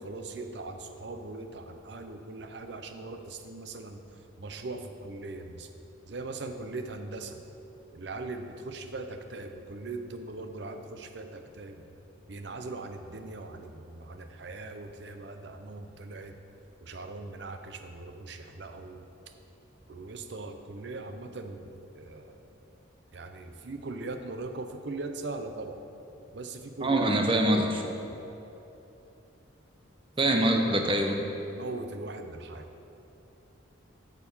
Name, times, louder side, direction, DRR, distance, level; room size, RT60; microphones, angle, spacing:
voice 1, 0.0-4.0 4.4-5.7 6.1-7.4 7.9-11.8 12.3-16.3 16.8-19.0 19.9-22.4 23.1-25.8 26.3-27.1 27.8-28.2 30.3-30.4 31.5-32.7, right 3 dB, 60° right, 6 dB, 0.6 m, -40 dB
voice 2, 26.8-27.8 30.2-31.2, right 1 dB, 25° right, 3 dB, 0.8 m, -24 dB
9.1 x 6.8 x 5.5 m, 3.0 s
head